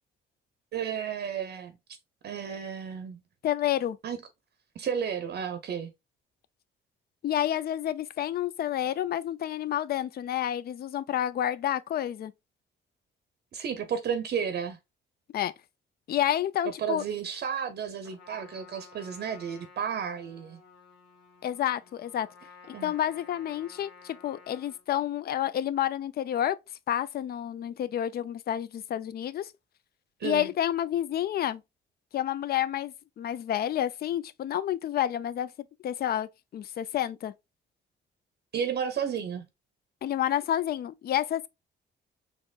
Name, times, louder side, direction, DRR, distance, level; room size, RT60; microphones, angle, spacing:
voice 1, 0.7-1.8 2.2-3.2 4.0-4.2 4.8-5.9 13.5-14.8 16.8-20.6 22.7-22.9 30.2-30.5 38.5-39.5, right 7 dB, 55° right, 0.6 m, -32 dB
voice 2, 3.4-4.0 7.2-12.3 15.3-15.5 16.1-17.0 21.4-22.3 22.8-26.6 26.9-29.5 30.2-31.6 32.1-35.5 35.8-37.3 40.0-41.5, left 11 dB, 50° left, 0.4 m, -29 dB
Trumpet, 18.0-24.8, left 5 dB, 70° left, 1.8 m, -53 dB
4.2 x 3.0 x 2.3 m
cardioid pair, 90°, 20 cm